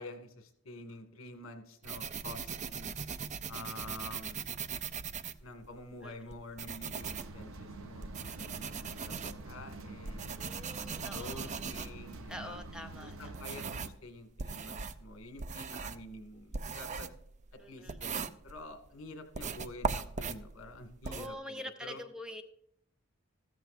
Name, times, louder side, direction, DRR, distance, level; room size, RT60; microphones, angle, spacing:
voice 1, 0.0-3.0 3.5-4.5 5.4-10.5 10.8-12.6 13.0-17.1 17.7-22.0, left 1 dB, 70° left, 6 dB, 1.9 m, -48 dB
sound 1, 1.8-5.8 6.3-14.0 14.4-18.9 19.3-21.3, right 5 dB, 35° right, 0.5 m, -40 dB
sound 2, 6.9-13.9, right 2 dB, 75° right, 0.9 m, -47 dB
voice 2, 10.3-11.5 12.3-13.3 17.6-18.0 21.0-22.4, left 1 dB, 5° right, 6 dB, 0.7 m, -45 dB
14.0 x 14.0 x 2.5 m, 0.72 s
head